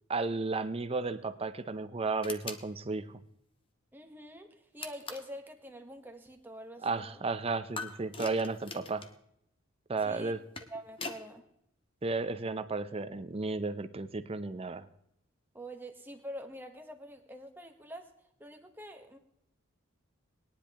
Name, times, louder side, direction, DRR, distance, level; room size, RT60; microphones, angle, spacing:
voice 1, 0.1-3.2 6.8-9.0 9.9-10.4 12.0-14.8, right 3 dB, 30° right, 12 dB, 0.6 m, -33 dB
sound 1, 2.2-2.7 4.8-5.3 7.8-9.2 10.3-11.2, left 4 dB, 25° left, 0.8 m, -42 dB
voice 2, 3.9-7.2 10.0-10.3 10.7-11.4 15.5-18.1 18.4-19.2, equal, 10° right, 5 dB, 1.1 m, -46 dB
20.0 x 10.0 x 3.0 m, 0.76 s
head